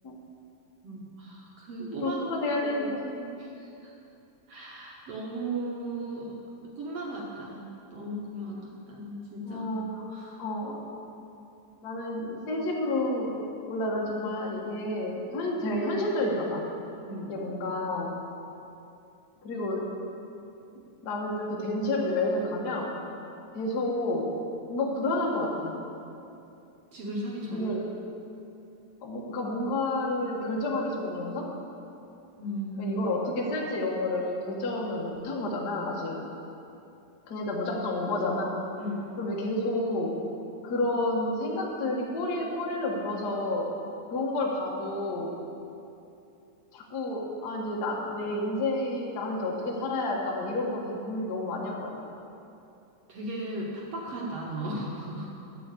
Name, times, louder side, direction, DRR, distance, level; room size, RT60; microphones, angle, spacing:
voice 1, 0.8-3.9 4.5-9.7 10.1-10.8 17.1-17.3 26.9-27.7 32.4-33.0 38.8-39.2 53.1-55.3, right 1 dB, 60° right, -3 dB, 1.7 m, -37 dB
voice 2, 1.8-3.0 9.4-10.1 10.4-10.8 11.8-13.4 13.7-16.7 17.2-18.2 19.4-19.9 21.0-22.9 23.5-24.3 24.7-25.8 27.5-27.8 29.0-31.5 32.8-36.2 37.3-38.6 39.2-40.2 40.6-43.7 44.1-45.3 46.7-51.9, left 2 dB, 65° left, -2 dB, 0.9 m, -30 dB
13.0 x 5.0 x 8.3 m, 2.7 s
omnidirectional pair, 4.1 m